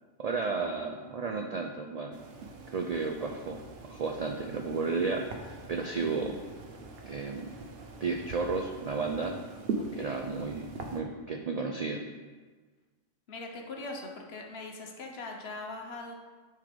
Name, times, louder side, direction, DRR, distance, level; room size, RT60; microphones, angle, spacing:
voice 1, 0.2-2.2 2.7-3.6 3.8-6.3 7.1-7.5 8.0-9.3 9.9-12.0, right 4 dB, 75° right, 3 dB, 0.3 m, -33 dB
sound 1, 2.1-11.0, right 3 dB, 60° right, 0.9 m, -42 dB
voice 2, 9.8-10.2 13.3-16.2, left 2 dB, 60° left, 2 dB, 1.1 m, -41 dB
9.3 x 3.4 x 5.1 m, 1.4 s
omnidirectional pair, 1.3 m